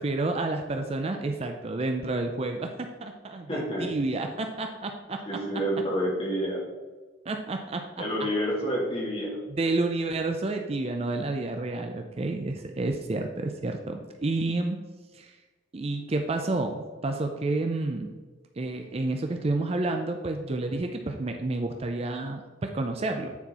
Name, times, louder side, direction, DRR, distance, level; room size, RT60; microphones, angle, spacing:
voice 1, 0.0-5.4 7.3-7.8 9.5-14.8 15.1-15.3 15.7-18.1 18.6-23.4, right 2 dB, 30° right, 4 dB, 0.5 m, -30 dB
voice 2, 3.5-3.9 5.3-6.7 8.0-9.4, equal, 30° left, -4 dB, 2.1 m, -28 dB
9.3 x 4.4 x 4.2 m, 1.3 s
head